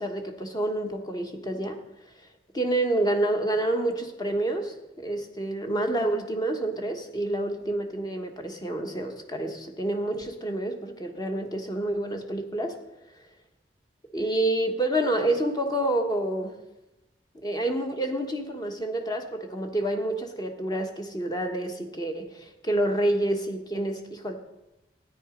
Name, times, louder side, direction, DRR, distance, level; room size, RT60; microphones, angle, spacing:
voice 1, 0.0-1.8 2.5-12.8 14.1-16.6 17.3-24.3, right 1 dB, 20° left, 5 dB, 1.2 m, -28 dB
13.0 x 9.8 x 5.1 m, 0.97 s
head